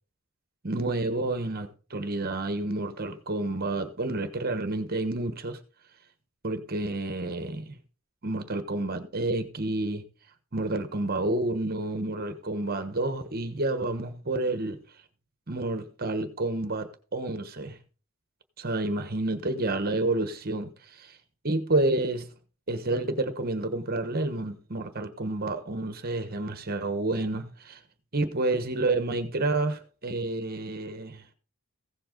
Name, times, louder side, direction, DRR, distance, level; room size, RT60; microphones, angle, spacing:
voice 1, 0.6-5.6 6.4-7.8 8.2-10.0 10.5-14.8 15.5-17.8 18.6-21.2 21.4-22.3 22.7-27.8 28.1-31.2, right 2 dB, 45° right, 1.2 m, -29 dB
15.5 x 7.8 x 3.9 m
head